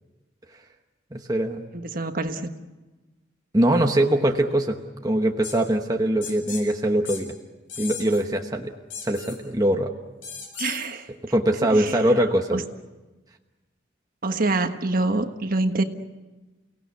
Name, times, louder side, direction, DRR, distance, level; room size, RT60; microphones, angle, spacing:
voice 1, 1.1-1.7 3.5-4.8 5.0-7.3 7.8-8.7 9.0-9.9 11.3-12.6, right 1 dB, 20° right, 3 dB, 1.1 m, -22 dB
voice 2, 1.7-2.5 10.6-11.1 11.7-12.0 12.5-12.6 14.2-15.8, right 2 dB, 45° right, 7 dB, 1.4 m, -26 dB
sound 1, 5.4-5.6 6.2-6.6 7.0-7.2 7.7-8.2 8.9-9.4 10.2-10.9, left 6 dB, 85° left, 6.7 m, -36 dB
29.5 x 18.0 x 8.3 m, 1.2 s
head